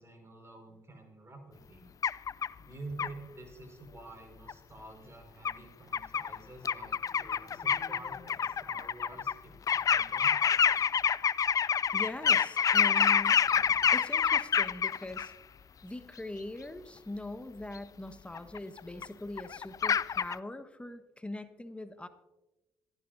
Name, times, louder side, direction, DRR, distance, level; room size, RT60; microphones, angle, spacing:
voice 1, 0.0-1.9 2.6-10.4, right 2 dB, 25° right, 3 dB, 5.3 m, -49 dB
sound 1, 2.0-2.5 3.0-3.1 4.5-4.6 5.4-5.5 5.9-6.4 6.6-9.3 9.7-15.3 17.8-17.9 18.3-19.1 19.4-20.4, left 7 dB, 35° left, 0.4 m, -27 dB
voice 2, 11.9-13.4 13.9-15.3 15.8-22.1, left 1 dB, 10° left, 9 dB, 1.3 m, -41 dB
26.5 x 11.0 x 2.7 m, 1.0 s
hypercardioid pair, 50°, 10 cm